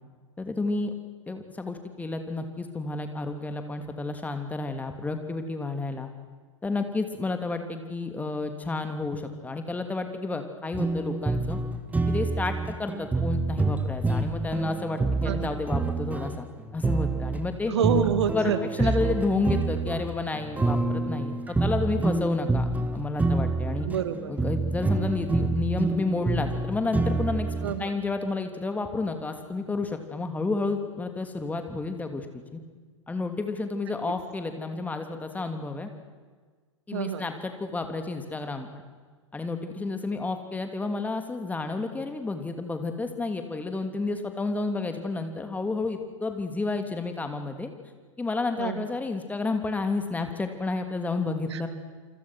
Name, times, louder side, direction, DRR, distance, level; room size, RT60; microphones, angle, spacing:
voice 1, 0.4-0.9 1.3-6.1 6.6-11.6 12.1-16.5 16.7-17.7 18.3-23.9 24.3-32.6 33.1-35.9 36.9-38.7 39.3-47.7 48.2-51.7, left 3 dB, 10° left, 6 dB, 2.8 m, -31 dB
sound 1, 10.7-17.4 17.8-27.8, right 3 dB, 10° right, 1.8 m, -27 dB
voice 2, 15.3-15.6 17.7-19.0 23.8-24.3 27.6-28.0 36.9-37.3 48.6-48.9 51.5-51.7, right 8 dB, 60° right, 10 dB, 2.1 m, -28 dB
28.5 x 25.5 x 6.3 m, 1.5 s
figure-of-eight pair, 100°, 16 cm